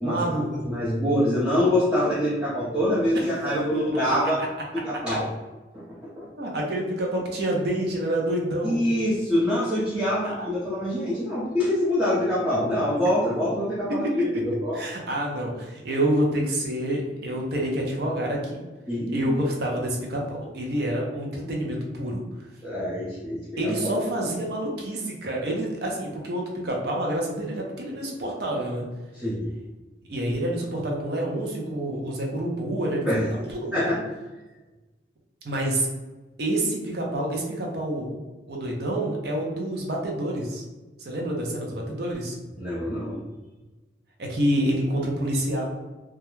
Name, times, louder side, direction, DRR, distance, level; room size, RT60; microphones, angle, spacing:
voice 1, 0.0-0.7 3.1-3.9 4.2-4.3 6.4-8.8 10.0-10.3 13.9-14.1 14.7-18.6 19.1-22.2 23.6-28.9 30.1-33.1 33.5-33.8 35.4-35.9 36.4-38.1 38.5-40.6 41.0-42.4 44.2-45.6, right 1 dB, 55° right, -1 dB, 0.5 m, -28 dB
voice 2, 0.6-4.4 4.7-5.3 5.7-6.3 8.6-14.8 18.9-19.4 22.6-23.7 24.0-24.1 29.1-29.5 33.1-33.3 33.7-34.0 42.6-43.2, left 1 dB, 5° right, -11 dB, 0.5 m, -25 dB
2.3 x 2.0 x 3.0 m, 1.2 s
head